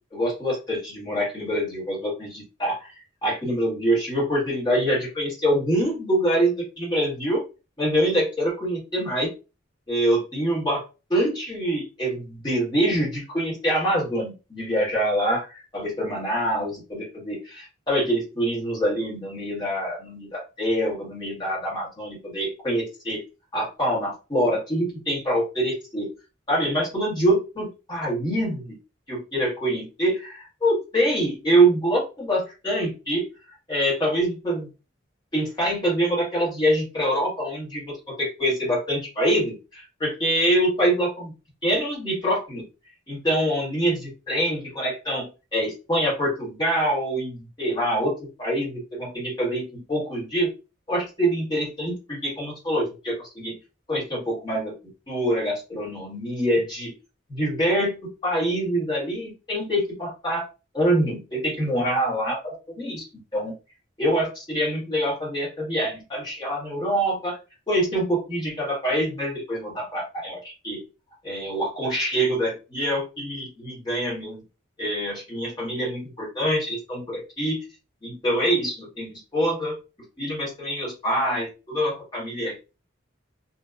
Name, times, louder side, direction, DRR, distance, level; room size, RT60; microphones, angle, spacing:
voice 1, 0.1-2.9 3.2-7.4 7.8-9.3 9.9-10.8 11.1-23.2 23.5-26.1 26.5-28.8 29.1-33.3 33.7-34.7 35.3-41.3 41.6-42.7 43.1-50.5 50.9-53.6 53.9-54.7 55.1-56.9 57.3-60.4 60.7-63.0 63.3-63.5 64.0-67.4 67.7-70.8 71.2-74.4 74.8-77.6 78.0-79.8 80.2-82.5, right 1 dB, 20° left, -5 dB, 1.2 m, -25 dB
2.8 x 2.1 x 2.4 m, 0.30 s
head